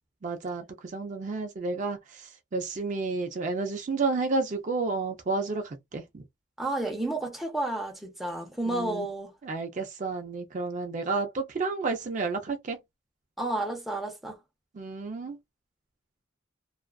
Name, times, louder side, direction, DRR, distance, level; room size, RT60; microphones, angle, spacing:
voice 1, 0.2-6.2 8.7-9.1 9.4-12.8 14.7-15.4, right 3 dB, 40° right, 0.4 m, -31 dB
voice 2, 6.6-9.3 13.4-14.4, right 2 dB, ahead, 0.7 m, -31 dB
2.3 x 2.3 x 2.2 m
head